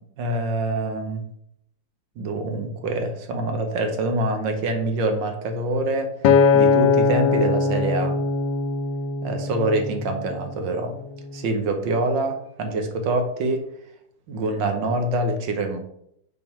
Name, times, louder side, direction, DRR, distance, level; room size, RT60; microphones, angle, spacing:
voice 1, 0.2-1.2 2.2-6.1 6.5-8.2 9.2-11.0 11.3-13.7 14.3-15.8, right 2 dB, 85° right, 5 dB, 1.7 m, -25 dB
Acoustic guitar, 6.2-10.6 11.2-11.4, left 5 dB, 80° left, 1.2 m, -21 dB
5.8 x 3.6 x 5.9 m, 0.73 s
omnidirectional pair, 1.9 m